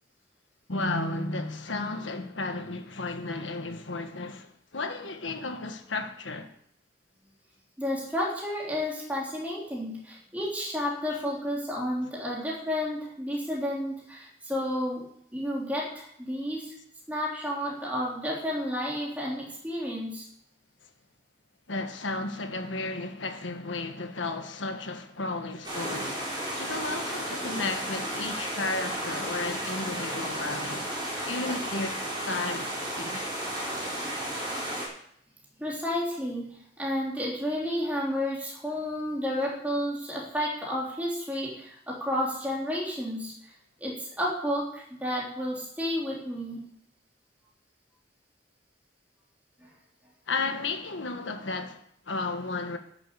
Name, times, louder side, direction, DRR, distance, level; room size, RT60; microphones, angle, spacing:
voice 1, 0.7-6.5 21.7-26.3 26.6-30.9 31.2-33.2 50.3-52.8, left 3 dB, 80° left, 1.4 m, -33 dB
voice 2, 7.8-15.0 15.3-16.7 17.1-20.2 35.6-43.3 43.8-46.7 49.6-49.7, equal, 10° right, 3.2 m, -31 dB
sound 1, 25.6-34.9, right 1 dB, 25° right, 4.6 m, -33 dB
12.0 x 7.6 x 6.7 m
head